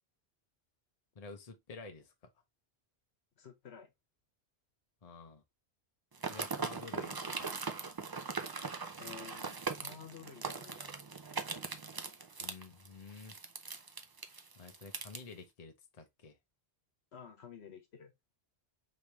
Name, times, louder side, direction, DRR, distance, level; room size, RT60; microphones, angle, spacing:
voice 1, 1.1-2.1 5.0-5.4 6.3-7.6 12.4-13.4 14.6-16.4, left 4 dB, 40° left, 0.8 m, -50 dB
voice 2, 3.4-3.9 9.0-10.9 17.1-18.1, left 7 dB, 70° left, 1.3 m, -51 dB
sound 1, 6.1-15.2, right 4 dB, 40° right, 0.3 m, -40 dB
5.1 x 3.2 x 3.0 m
omnidirectional pair, 1.1 m